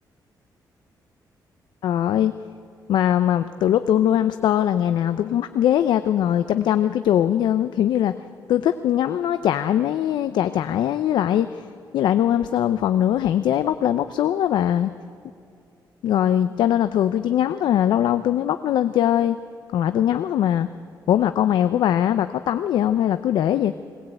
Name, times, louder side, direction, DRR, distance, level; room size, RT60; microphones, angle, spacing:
voice 1, 1.8-2.3 2.9-8.2 8.5-11.6 11.9-14.9 16.0-19.4 19.7-20.7 21.1-23.7, left 10 dB, 85° left, 11 dB, 0.6 m, -21 dB
21.5 x 18.5 x 8.9 m, 2.4 s
cardioid pair, 120°, 8 cm